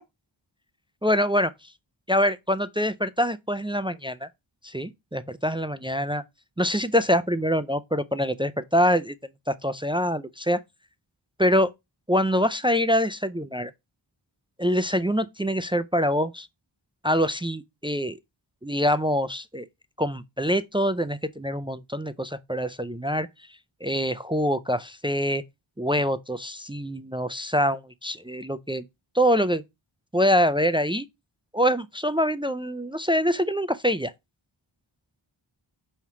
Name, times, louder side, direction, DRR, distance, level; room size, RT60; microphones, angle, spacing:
voice 1, 1.0-1.5 2.1-4.3 4.6-6.2 6.6-9.1 9.5-10.6 11.4-11.7 12.1-13.7 14.6-16.5 17.0-18.2 18.6-19.7 20.0-23.3 23.8-25.4 25.8-28.8 29.1-29.6 30.1-31.1 31.5-34.1, equal, 10° right, 0.3 m, -25 dB
5.6 x 3.1 x 5.6 m
wide cardioid pair, 50°, 48 cm